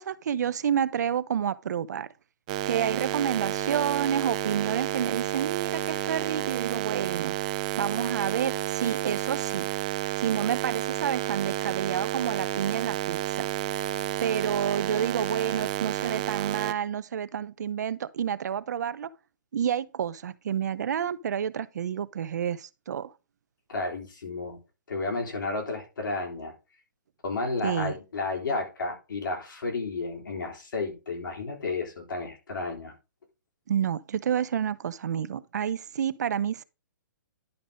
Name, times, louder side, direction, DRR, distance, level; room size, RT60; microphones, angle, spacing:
voice 1, 0.0-2.1 2.6-7.3 7.8-9.7 10.2-13.5 14.2-19.1 19.5-23.1 27.6-27.9 33.7-36.6, right 8 dB, 60° right, 0.6 m, -29 dB
sound 1, 2.5-16.7, right 14 dB, 20° right, 0.3 m, -31 dB
voice 2, 23.7-24.6 24.9-26.5 27.2-32.9, left 3 dB, 85° left, 3.7 m, -32 dB
11.0 x 3.9 x 5.0 m
hypercardioid pair, 170°, 11 cm